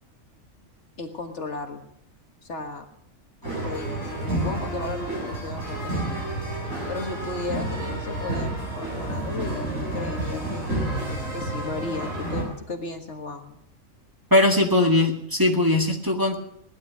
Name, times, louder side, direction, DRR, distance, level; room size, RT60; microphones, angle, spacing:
voice 1, 1.0-1.9 2.4-2.9 3.4-6.2 6.9-10.8 11.3-13.6, left 3 dB, 55° left, 4 dB, 1.8 m, -35 dB
sound 1, 3.4-12.4, right 1 dB, 75° right, 6.5 m, -30 dB
voice 2, 14.3-16.4, left 1 dB, 15° right, -1 dB, 1.8 m, -20 dB
18.0 x 11.5 x 6.2 m, 0.74 s
omnidirectional pair, 1.4 m